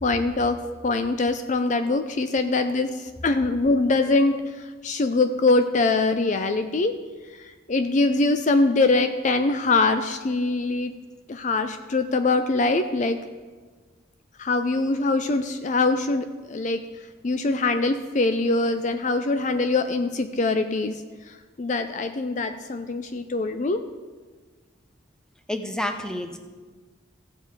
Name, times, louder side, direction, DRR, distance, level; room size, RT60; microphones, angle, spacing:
voice 1, 0.0-7.0 7.3-11.0 11.3-13.2 14.4-16.9 17.2-21.0 21.3-23.8, left 3 dB, 40° left, 9 dB, 0.4 m, -23 dB
voice 2, 25.5-26.4, left 1 dB, 5° left, 7 dB, 0.7 m, -29 dB
15.5 x 7.5 x 4.8 m, 1.4 s
head